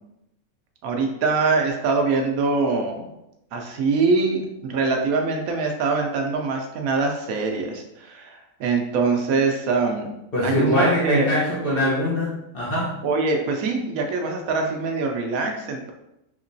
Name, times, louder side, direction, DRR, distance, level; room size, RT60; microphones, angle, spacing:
voice 1, 0.8-3.1 3.5-10.1 10.4-11.3 13.0-15.9, right 4 dB, 80° right, 3 dB, 1.0 m, -23 dB
voice 2, 10.3-12.9, left 1 dB, 45° left, -7 dB, 1.1 m, -22 dB
3.6 x 2.9 x 2.6 m, 0.86 s
omnidirectional pair, 1.5 m